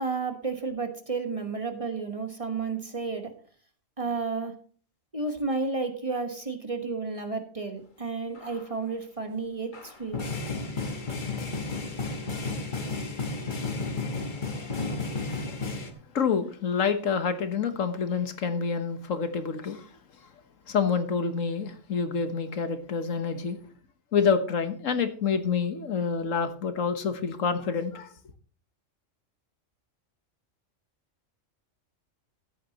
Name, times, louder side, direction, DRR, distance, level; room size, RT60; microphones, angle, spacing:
voice 1, 0.0-3.3 4.0-4.6 5.1-10.2, right 4 dB, 25° right, 6 dB, 1.3 m, -32 dB
sound 1, 8.4-8.6 9.7-15.9, left 3 dB, 40° left, 1.4 m, -32 dB
voice 2, 16.1-19.8 20.7-23.6 24.1-28.1, left 6 dB, 80° left, 9 dB, 1.6 m, -27 dB
14.0 x 10.0 x 2.9 m, 0.43 s
omnidirectional pair, 1.3 m